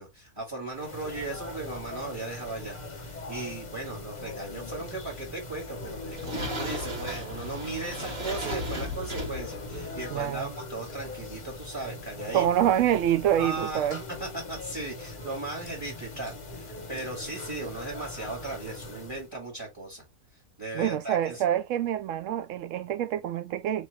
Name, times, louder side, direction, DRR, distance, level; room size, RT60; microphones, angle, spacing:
voice 1, 0.0-12.5 13.4-13.9 14.2-20.0 20.6-21.4, right 2 dB, 15° right, 1.8 m, -37 dB
sound 1, 0.7-19.3, left 2 dB, 35° left, 0.9 m, -41 dB
sound 2, 5.6-10.6, equal, 85° right, 2.7 m, -36 dB
voice 2, 10.1-10.5 12.3-14.0 20.7-23.9, right 11 dB, 70° right, 0.9 m, -26 dB
4.2 x 3.0 x 3.2 m
omnidirectional pair, 1.5 m